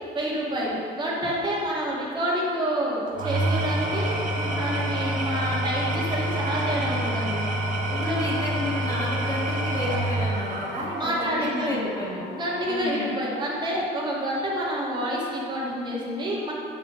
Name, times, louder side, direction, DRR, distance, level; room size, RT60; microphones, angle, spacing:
voice 1, 0.1-7.4 7.9-8.3 10.9-11.8 12.3-16.5, equal, 25° right, -5 dB, 2.0 m, -28 dB
Engine / Tools, 3.1-11.4, right 1 dB, 45° right, 1.3 m, -27 dB
sound 1, 3.7-12.8, left 4 dB, 75° left, 0.8 m, -40 dB
voice 2, 7.9-12.2 12.6-13.2, left 1 dB, 20° left, -5 dB, 1.6 m, -32 dB
8.9 x 5.0 x 5.1 m, 2.3 s
cardioid pair, 110°, 17 cm